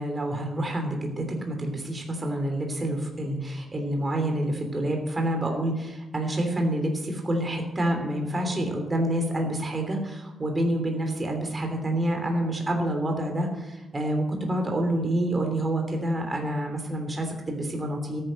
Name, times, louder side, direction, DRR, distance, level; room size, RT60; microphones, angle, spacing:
voice 1, 0.0-18.2, right 1 dB, 20° right, 3 dB, 3.1 m, -28 dB
13.5 x 9.7 x 7.4 m, 1.0 s
wide cardioid pair, 145°, 0 cm